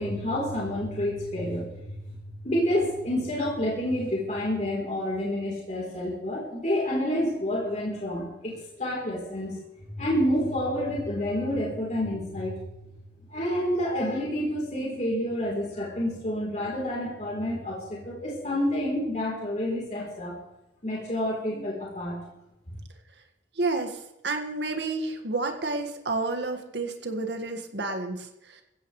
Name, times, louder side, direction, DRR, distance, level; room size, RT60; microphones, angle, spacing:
voice 1, 0.0-1.8 2.4-9.5 9.9-12.5 13.3-20.4 20.8-22.2 22.7-22.8, left 1 dB, 40° left, -4 dB, 3.7 m, -28 dB
voice 2, 23.6-28.6, right 3 dB, 75° right, 5 dB, 1.8 m, -30 dB
19.5 x 15.5 x 3.3 m, 0.91 s
head